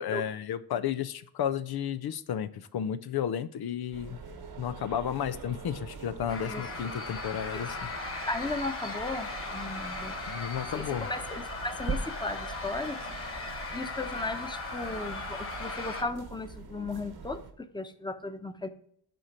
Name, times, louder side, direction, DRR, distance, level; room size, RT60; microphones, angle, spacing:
voice 1, 0.0-4.2 4.6-7.8 10.3-11.1, left 9 dB, 85° left, 12 dB, 0.6 m, -32 dB
sound 1, 3.9-17.5, right 5 dB, 80° right, 1.3 m, -43 dB
sound 2, 6.3-16.0, left 3 dB, 35° left, 1.7 m, -38 dB
voice 2, 8.2-10.2 10.7-13.0 13.7-18.7, left 2 dB, 10° left, 8 dB, 0.9 m, -36 dB
7.8 x 4.4 x 6.0 m, 0.65 s
cardioid pair, 85°, 37 cm